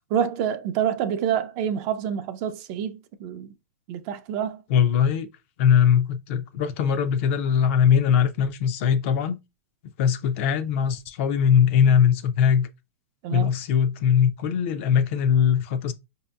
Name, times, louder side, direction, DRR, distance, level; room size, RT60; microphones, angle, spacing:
voice 1, 0.1-3.5 3.9-4.6 13.2-13.5, right 9 dB, 40° right, 0.5 m, -27 dB
voice 2, 4.7-5.3 5.6-9.4 10.0-12.7 13.3-15.9, left 8 dB, 50° left, 0.5 m, -21 dB
4.8 x 2.7 x 2.3 m
hypercardioid pair, 140°, 9 cm